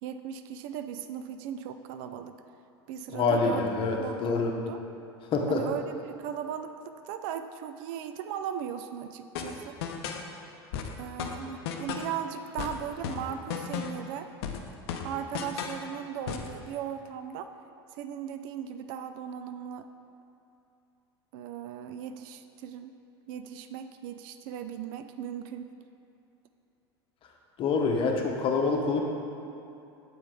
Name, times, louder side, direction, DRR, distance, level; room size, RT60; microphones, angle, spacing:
voice 1, 0.0-2.4 2.9-3.7 4.0-4.8 5.5-9.8 11.0-14.3 15.0-17.5 17.9-19.9 21.3-23.0 23.3-25.7, right 9 dB, 55° right, 9 dB, 0.4 m, -37 dB
voice 2, 3.1-4.5 5.3-5.6 27.6-29.0, left 4 dB, 40° left, 1 dB, 0.9 m, -26 dB
sound 1, 9.4-10.3 10.7-12.2 12.6-14.1 14.4-15.9 16.3-16.6, left 7 dB, 65° left, 0.6 m, -35 dB
7.7 x 4.9 x 3.7 m, 2.7 s
hypercardioid pair, 85°, 14 cm